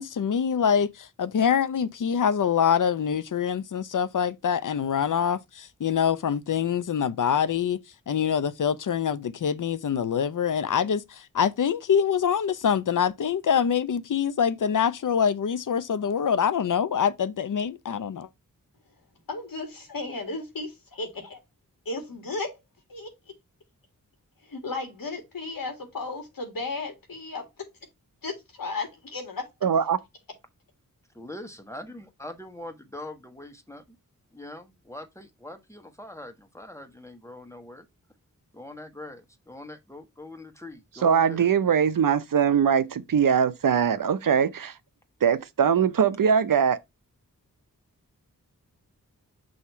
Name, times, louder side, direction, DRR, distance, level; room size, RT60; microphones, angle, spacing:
voice 1, 0.0-7.8 8.1-11.0 11.3-18.3, left 7 dB, 65° left, 0.6 m, -25 dB
voice 2, 19.3-21.4 21.9-22.6 22.9-23.1 24.4-27.7 28.2-29.5, left 3 dB, 80° left, 2.0 m, -34 dB
voice 3, 29.6-30.0 41.0-44.7 45.2-46.8, right 7 dB, 70° right, 0.6 m, -22 dB
voice 4, 31.1-34.0 34.3-37.9 38.5-41.5, left 1 dB, 10° left, 1.3 m, -42 dB
6.4 x 2.8 x 5.5 m
wide cardioid pair, 70°, 34 cm